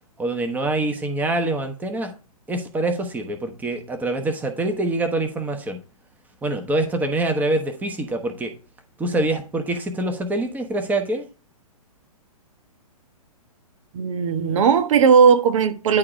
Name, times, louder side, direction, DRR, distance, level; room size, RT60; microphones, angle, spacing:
voice 1, 0.2-2.1 2.5-5.8 6.4-8.5 9.0-11.3, right 2 dB, 10° right, 1.1 m, -25 dB
voice 2, 13.9-16.0, right 6 dB, 55° right, 1.1 m, -17 dB
11.0 x 3.8 x 4.9 m
hypercardioid pair, 125°, 19 cm